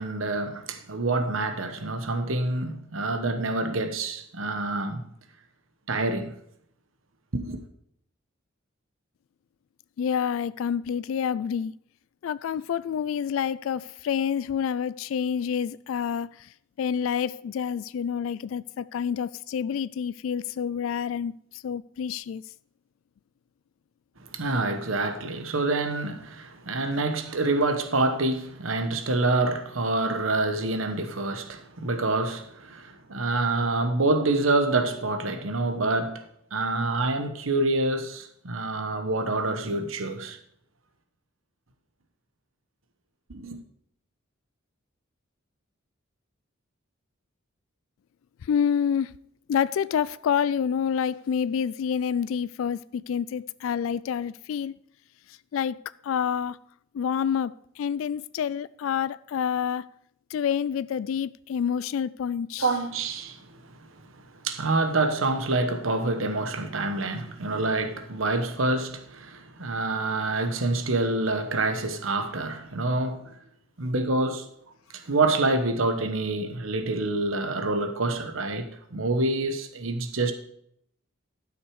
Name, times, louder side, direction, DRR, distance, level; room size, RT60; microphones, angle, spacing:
voice 1, 0.0-5.1 5.9-6.3 7.3-7.6 24.2-36.2 36.5-40.4 43.3-43.6 62.6-63.6 64.4-73.3 73.8-74.5 74.9-80.3, right 2 dB, 80° right, 1.1 m, -27 dB
voice 2, 10.0-11.7 12.2-22.4 48.4-49.2 49.5-54.8 55.3-55.8 56.0-56.6 56.9-59.9 60.3-62.7, left 7 dB, 75° left, 0.3 m, -28 dB
11.5 x 6.5 x 4.7 m
head